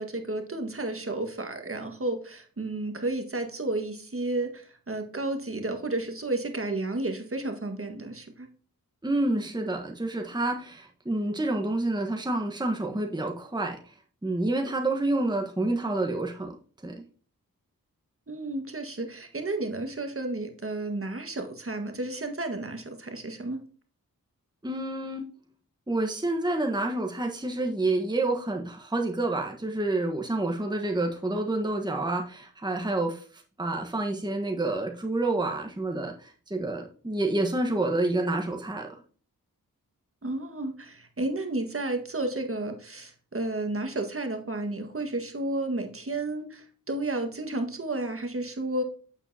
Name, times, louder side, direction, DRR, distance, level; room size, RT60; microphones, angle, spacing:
voice 1, 0.0-8.5 18.3-23.6 40.2-48.8, right 2 dB, 40° right, 5 dB, 1.7 m, -32 dB
voice 2, 9.0-13.9 14.2-16.5 16.8-16.9 24.6-25.2 25.9-38.9, right 2 dB, 10° right, 2 dB, 1.3 m, -28 dB
8.2 x 7.4 x 2.8 m, 0.42 s
cardioid pair, 40°, 34 cm